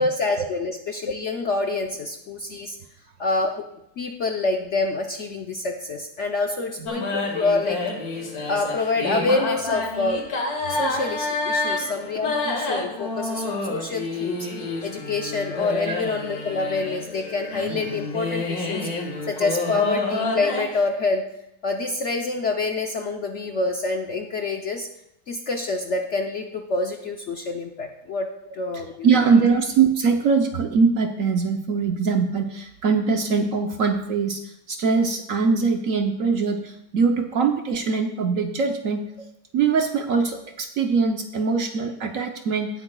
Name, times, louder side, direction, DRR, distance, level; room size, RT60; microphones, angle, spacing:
voice 1, 0.0-2.8 3.2-7.8 8.5-10.3 10.7-14.5 14.8-21.3 21.6-24.9 25.3-29.2, left 3 dB, 70° left, 3 dB, 0.6 m, -27 dB
sound 1, 6.9-20.8, left 2 dB, 50° left, 2.0 m, -29 dB
voice 2, 11.6-12.0 15.9-16.0 28.7-39.0 39.5-42.7, right 5 dB, 60° right, 5 dB, 0.8 m, -22 dB
17.5 x 8.5 x 2.3 m, 0.80 s
omnidirectional pair, 2.1 m